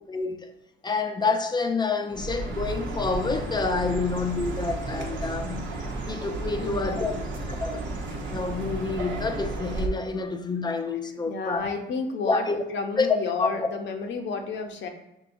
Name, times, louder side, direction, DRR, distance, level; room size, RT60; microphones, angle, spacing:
voice 1, 0.1-0.5 0.8-5.8 6.1-7.1 7.5-11.7 12.2-12.6 13.0-13.5, left 4 dB, 20° left, 0.5 m, -28 dB
Chirp tweet, 2.1-9.9, right 2 dB, 75° right, 0.9 m, -33 dB
voice 2, 6.6-7.3 11.3-14.9, left 4 dB, 70° left, 0.7 m, -32 dB
6.1 x 2.6 x 2.6 m
cardioid pair, 90°, 20 cm